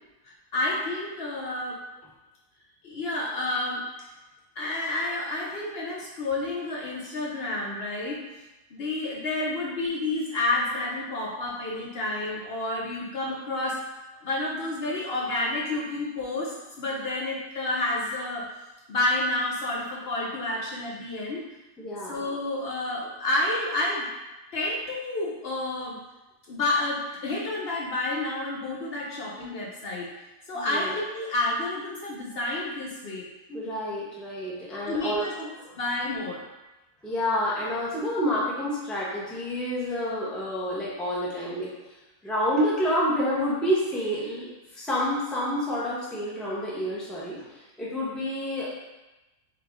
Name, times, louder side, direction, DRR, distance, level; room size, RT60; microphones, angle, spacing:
voice 1, 0.5-1.8 2.8-3.8 4.6-8.2 8.7-13.8 14.2-18.5 18.9-21.4 22.1-24.1 24.5-26.0 26.5-30.1 30.5-33.3 34.9-35.3 35.8-36.4, left 2 dB, 60° left, -4 dB, 0.6 m, -29 dB
voice 2, 21.8-22.3 30.5-30.9 33.5-35.7 37.0-41.7 42.2-48.7, equal, ahead, -7 dB, 0.6 m, -29 dB
3.6 x 3.5 x 3.5 m, 1.0 s
omnidirectional pair, 1.7 m